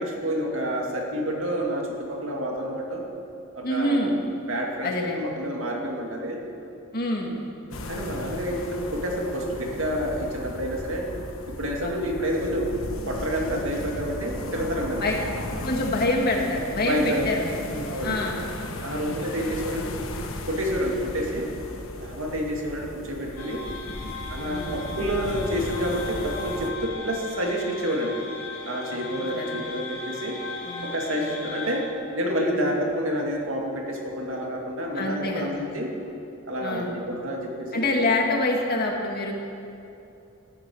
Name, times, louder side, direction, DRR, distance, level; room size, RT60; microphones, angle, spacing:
voice 1, 0.0-3.0 3.5-4.2 4.5-6.4 7.9-11.1 11.5-12.7 13.0-15.1 16.9-17.2 17.9-18.2 18.8-19.9 20.4-21.5 22.0-23.7 24.3-28.2 28.7-30.4 30.8-35.9 36.5-37.8, equal, 70° right, 0 dB, 2.4 m, -29 dB
voice 2, 3.6-4.2 4.8-5.3 6.9-7.4 11.8-12.1 15.0-15.2 15.6-18.4 18.9-19.2 24.4-24.8 28.9-29.0 29.3-29.6 30.7-31.0 32.5-32.7 34.9-35.6 36.6-37.0 37.7-39.3, left 2 dB, 45° left, 0 dB, 2.0 m, -26 dB
sound 1, 7.7-26.7, left 1 dB, 70° left, 1.3 m, -36 dB
sound 2, 23.4-31.8, left 3 dB, 90° left, 2.9 m, -37 dB
15.0 x 11.5 x 6.3 m, 2.8 s
head